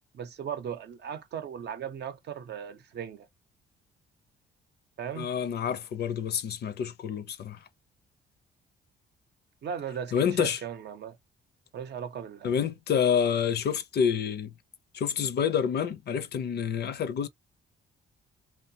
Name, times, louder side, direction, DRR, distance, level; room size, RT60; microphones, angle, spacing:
voice 1, 0.1-3.3 5.0-5.3 9.6-11.2 11.7-12.6, right 8 dB, 60° right, 0.6 m, -37 dB
voice 2, 5.2-7.6 10.1-10.6 12.4-14.5 14.9-17.3, left 7 dB, 55° left, 0.5 m, -28 dB
2.7 x 2.1 x 2.7 m
cardioid pair, 90°, 20 cm